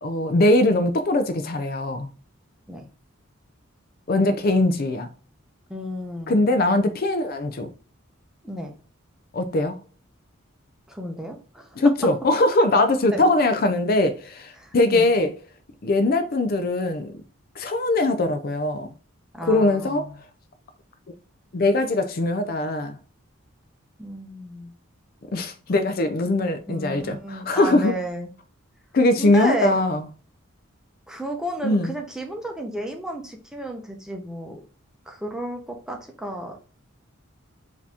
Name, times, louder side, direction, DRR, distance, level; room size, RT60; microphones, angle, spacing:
voice 1, 0.0-2.1 4.1-5.1 6.3-7.7 9.3-9.8 11.8-15.3 15.8-17.2 17.6-18.9 19.5-20.1 21.5-23.0 25.3-27.9 28.9-30.1 31.6-31.9, left 2 dB, 45° left, 0.4 m, -21 dB
voice 2, 5.7-6.4 8.4-8.7 10.9-11.7 13.1-13.2 14.6-15.1 19.3-20.1 24.0-24.7 26.7-28.3 29.2-29.8 31.1-34.6 35.1-36.7, right 1 dB, 5° right, 0.7 m, -32 dB
4.9 x 2.8 x 3.4 m
head